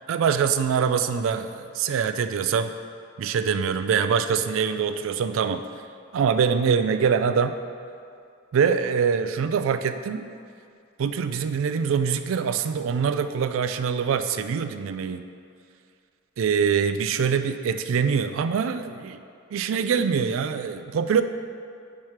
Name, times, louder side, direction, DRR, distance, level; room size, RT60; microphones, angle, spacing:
voice 1, 0.1-2.7 3.2-5.6 6.1-7.5 8.5-10.3 11.0-15.2 16.4-19.2 19.5-21.2, right 6 dB, 85° right, 10 dB, 0.3 m, -24 dB
4.8 x 4.6 x 5.6 m, 2.4 s
head